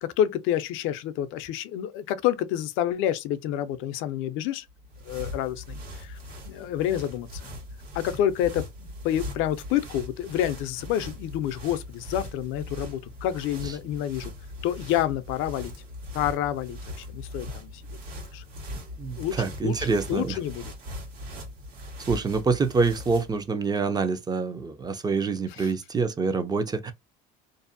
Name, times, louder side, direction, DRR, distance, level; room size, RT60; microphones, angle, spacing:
voice 1, 0.0-4.7 5.0-6.2 6.5-7.5 7.9-14.3 14.6-15.7 16.1-17.8 18.3-18.4 19.2-20.7 25.6-25.7, left 11 dB, 70° left, 0.5 m, -28 dB
sound 1, 4.7-23.4, left 1 dB, 75° right, 1.3 m, -40 dB
voice 2, 19.0-20.4 22.1-26.9, right 4 dB, 20° right, 0.4 m, -26 dB
2.6 x 2.0 x 2.5 m
supercardioid pair, 105°, 21 cm